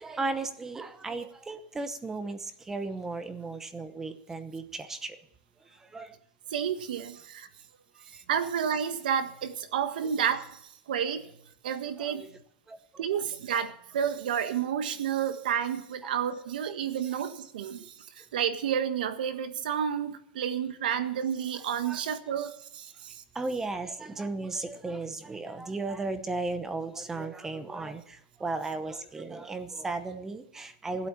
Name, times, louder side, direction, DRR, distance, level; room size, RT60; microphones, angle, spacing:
voice 1, 0.0-5.2 5.9-6.1 12.0-12.3 12.7-13.1 17.8-17.9 21.8-22.0 23.3-31.1, right 3 dB, 10° right, 10 dB, 0.8 m, -35 dB
voice 2, 6.5-7.5 8.3-10.6 10.9-11.2 11.6-12.3 13.0-23.2, right 8 dB, 90° right, 9 dB, 1.6 m, -30 dB
16.0 x 8.4 x 7.2 m, 0.74 s
supercardioid pair, 170°, 5 cm